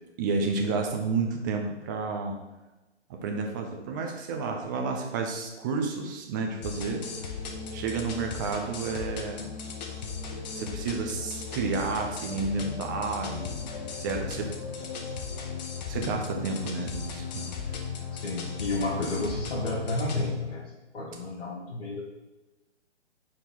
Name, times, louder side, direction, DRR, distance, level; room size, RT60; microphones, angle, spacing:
voice 1, 0.2-2.4 3.1-7.1 7.7-9.6 10.5-13.6 14.0-14.5 15.9-17.5, right 4 dB, 15° right, 2 dB, 0.5 m, -31 dB
sound 1, 6.6-20.3, left 5 dB, 35° left, 0.8 m, -36 dB
voice 2, 18.2-20.6 20.9-22.1, left 2 dB, 55° left, -7 dB, 1.8 m, -31 dB
4.6 x 4.4 x 5.4 m, 1.1 s
figure-of-eight pair, 135°, 35 cm